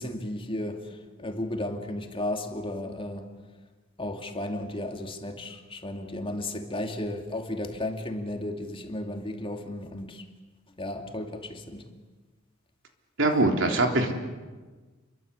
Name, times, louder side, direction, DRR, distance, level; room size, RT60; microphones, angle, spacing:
voice 1, 0.0-3.3 4.0-10.2 10.8-11.8, left 1 dB, 25° left, 2.7 m, -34 dB
voice 2, 13.2-14.1, right 2 dB, 65° right, 3.6 m, -22 dB
29.5 x 24.0 x 8.4 m
head